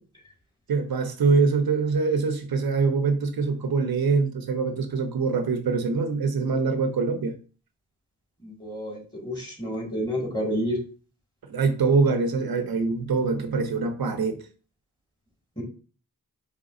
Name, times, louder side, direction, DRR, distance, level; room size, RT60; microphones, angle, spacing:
voice 1, 0.7-7.4 11.5-14.4, right 4 dB, 85° right, 8 dB, 0.6 m, -24 dB
voice 2, 8.6-10.8 15.6-15.7, equal, 10° left, -1 dB, 1.9 m, -29 dB
4.8 x 3.4 x 2.5 m, 0.38 s
wide cardioid pair, 60°, 36 cm